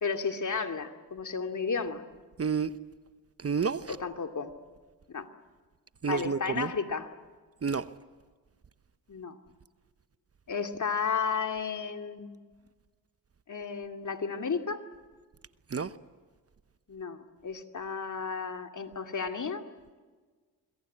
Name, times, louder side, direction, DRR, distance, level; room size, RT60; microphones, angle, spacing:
voice 1, 0.0-2.0 3.9-4.5 5.1-5.3 6.1-7.1 9.1-9.4 10.5-12.5 13.5-14.8 16.9-19.6, left 5 dB, 45° left, 2.6 m, -33 dB
voice 2, 2.4-2.7 3.4-4.0 6.0-6.7 7.6-7.9 15.7-15.9, right 6 dB, 35° right, 1.0 m, -29 dB
26.0 x 22.5 x 8.6 m
supercardioid pair, 50°, 42 cm